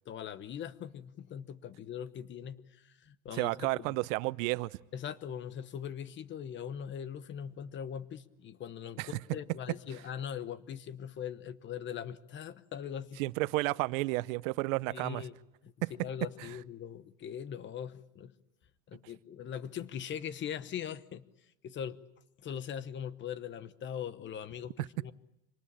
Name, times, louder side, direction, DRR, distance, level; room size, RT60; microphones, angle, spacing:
voice 1, 0.1-4.0 4.9-13.2 14.9-15.3 15.6-15.7 16.0-18.3 18.9-21.2 21.6-22.0 22.4-25.1, left 9 dB, 25° left, 1.0 m, -41 dB
voice 2, 3.3-4.7 9.0-9.1 13.2-15.2 15.8-15.9 16.4-16.5 24.8-24.9, right 22 dB, 65° right, 0.8 m, -32 dB
26.5 x 19.5 x 8.7 m
supercardioid pair, 145°, 42 cm